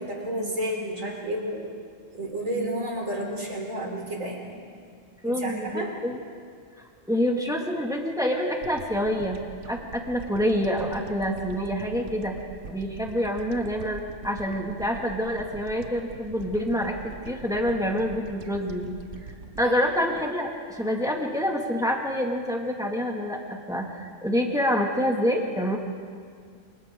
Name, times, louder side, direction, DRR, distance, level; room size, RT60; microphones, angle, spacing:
voice 1, 0.0-1.7 2.1-4.6 5.2-5.9 19.6-19.7, right 1 dB, 85° right, -1 dB, 4.3 m, -31 dB
voice 2, 5.2-6.2 6.8-9.4 9.7-12.3 12.6-19.0 19.2-19.3 19.6-25.8, equal, 5° right, 0 dB, 2.2 m, -27 dB
sound 1, 8.6-21.1, right 4 dB, 65° right, 1.4 m, -44 dB
28.0 x 27.0 x 3.9 m, 2.1 s
omnidirectional pair, 1.3 m